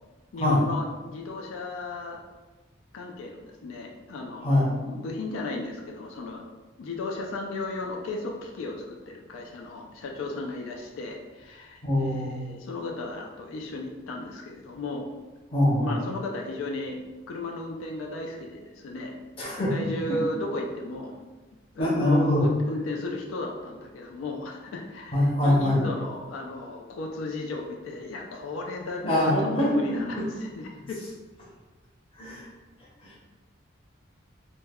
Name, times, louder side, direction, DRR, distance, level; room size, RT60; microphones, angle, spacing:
voice 1, 0.3-2.2 2.9-4.4 4.8-6.4 6.8-15.1 15.8-19.1 19.5-21.1 21.7-29.3 29.6-31.0, left 2 dB, 85° left, 1 dB, 0.3 m, -35 dB
voice 2, 11.8-12.4 15.5-16.0 19.4-19.7 20.1-20.2 21.8-22.5 25.1-25.8 29.0-30.2 32.2-32.5 33.0-33.2, left 1 dB, 25° left, -5 dB, 0.6 m, -23 dB
2.1 x 2.1 x 3.4 m, 1.2 s
head